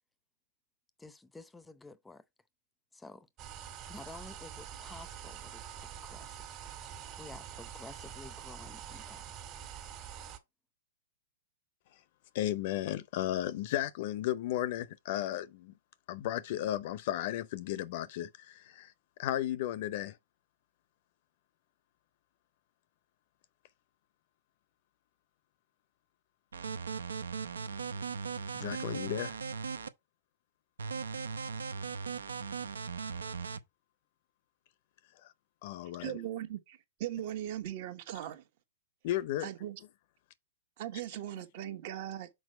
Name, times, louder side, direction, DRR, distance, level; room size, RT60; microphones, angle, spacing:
voice 1, 1.0-2.2 2.9-3.3 3.9-6.4 7.2-9.4, left 3 dB, 10° left, 0.6 m, -51 dB
sound 1, 3.4-10.4, right 9 dB, 35° right, 1.6 m, -46 dB
voice 2, 12.3-15.7 16.1-18.9 19.2-20.2 28.5-29.4 35.2-35.3 35.6-36.2 39.0-39.5, left 13 dB, 50° left, 0.6 m, -34 dB
sound 2, 26.5-29.9 30.8-33.6, right 5 dB, 80° right, 0.6 m, -38 dB
voice 3, 36.0-38.4 39.4-39.8 40.8-42.3, right 12 dB, 50° right, 1.2 m, -39 dB
6.1 x 4.6 x 4.3 m
hypercardioid pair, 110°, 0 cm